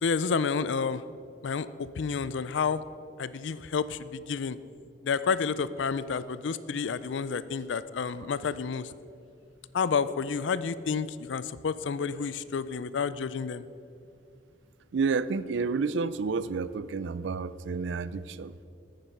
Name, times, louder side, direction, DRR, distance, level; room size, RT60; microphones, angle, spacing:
voice 1, 0.0-1.0 1.4-2.8 3.2-4.6 5.0-8.9 9.7-13.6, left 5 dB, 75° left, 15 dB, 0.4 m, -30 dB
voice 2, 14.9-18.5, right 4 dB, 70° right, 16 dB, 0.4 m, -30 dB
10.0 x 9.2 x 5.4 m, 2.5 s
head